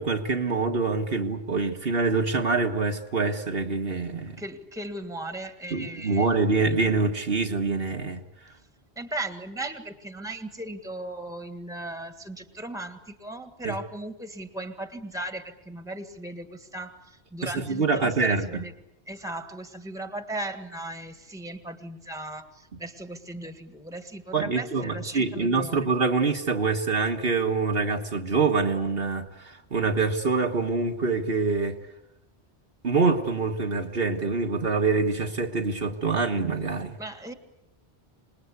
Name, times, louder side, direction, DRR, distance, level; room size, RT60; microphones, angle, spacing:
voice 1, 0.0-4.4 5.7-8.2 13.6-13.7 17.4-18.6 24.3-31.8 32.8-37.0, right 4 dB, 60° right, 1.7 m, -25 dB
voice 2, 4.4-6.8 9.0-18.7 19.1-25.9 37.0-37.3, right 1 dB, 5° right, 1.7 m, -37 dB
26.5 x 21.0 x 8.3 m
omnidirectional pair, 1.1 m